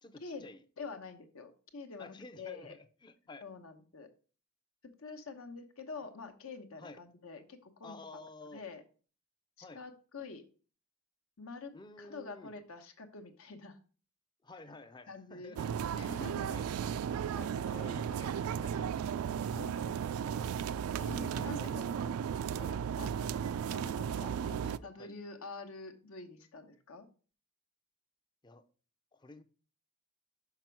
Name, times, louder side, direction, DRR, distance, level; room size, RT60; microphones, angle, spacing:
voice 1, 0.0-0.6 2.0-3.4 6.8-7.0 7.8-8.6 9.6-9.8 11.7-12.5 14.4-15.7 16.1-16.6 17.1-17.2 17.7-19.0 19.7-19.9 21.3-21.8 22.5-22.9 24.2-25.1 28.4-28.6 29.1-29.4, left 2 dB, 20° left, 0.5 m, -51 dB
voice 2, 0.8-2.8 3.4-4.1 5.0-8.0 8.5-8.8 9.6-10.5 11.4-13.8 15.1-15.6 15.9-16.5 17.3-18.3 19.4-20.5 20.9-22.1 23.0-23.1 23.7-24.3 24.8-27.1, left 4 dB, 75° left, 1.0 m, -47 dB
sound 1, 15.6-24.8, right 8 dB, 80° right, 0.3 m, -35 dB
6.0 x 5.8 x 4.5 m
head